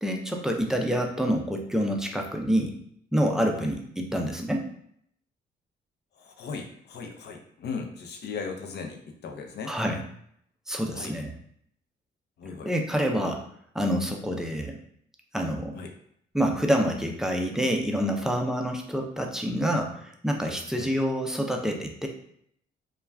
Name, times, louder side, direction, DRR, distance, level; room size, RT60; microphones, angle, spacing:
voice 1, 0.0-2.8 3.1-4.6 9.7-10.0 10.7-11.3 12.6-13.4 13.7-14.8 15.3-15.8 16.3-22.1, equal, 5° right, 2 dB, 0.4 m, -27 dB
voice 2, 6.2-9.8 10.9-11.1 12.4-12.7 13.1-13.3 15.7-15.9 20.7-20.9, left 5 dB, 60° left, 3 dB, 0.5 m, -37 dB
2.3 x 2.2 x 3.2 m, 0.68 s
cardioid pair, 90°, 20 cm